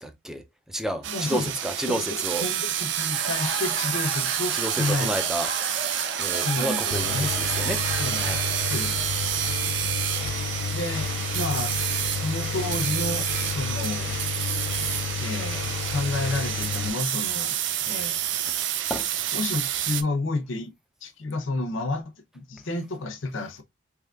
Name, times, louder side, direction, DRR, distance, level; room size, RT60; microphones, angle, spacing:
voice 1, 0.0-2.5 4.5-8.4 18.9-19.1, right 1 dB, 5° right, 0.5 m, -31 dB
sound 1, 1.0-20.0, right 11 dB, 65° right, 0.4 m, -29 dB
voice 2, 1.1-1.5 1.9-2.1 2.4-5.1 6.4-7.3 8.0-8.4 8.7-8.9 10.7-11.1 11.3-14.1 15.2-17.6 17.9-18.2 19.3-20.7 21.0-23.6, left 2 dB, 80° left, 0.7 m, -30 dB
Laughter / Crowd, 2.8-9.0, right 1 dB, 90° right, 1.3 m, -35 dB
Engine, 6.9-16.9, left 6 dB, 60° left, 0.3 m, -31 dB
3.5 x 3.1 x 2.4 m
head